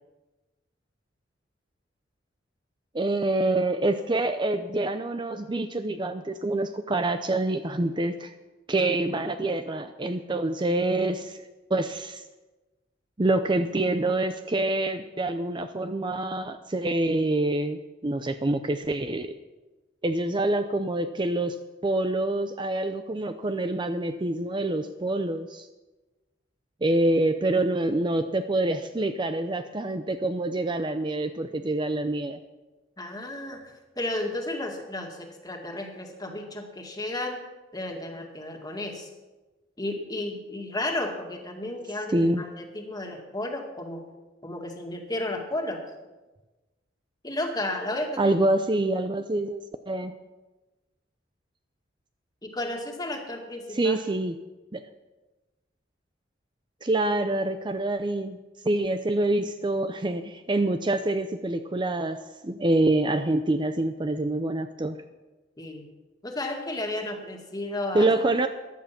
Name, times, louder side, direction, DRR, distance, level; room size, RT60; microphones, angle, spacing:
voice 1, 2.9-8.3 8.7-11.4 11.7-12.2 13.2-19.3 20.0-25.7 26.8-32.4 42.1-42.4 48.2-50.1 53.7-54.4 54.7-54.8 56.8-58.4 58.6-65.0 67.9-68.5, right 2 dB, 25° right, 9 dB, 0.6 m, -26 dB
voice 2, 33.0-37.4 37.7-39.1 39.8-44.0 44.4-45.8 47.2-48.3 52.4-54.0 65.6-65.9 66.2-68.1, left 1 dB, 20° left, 2 dB, 2.1 m, -33 dB
15.5 x 11.0 x 5.9 m, 1.1 s
head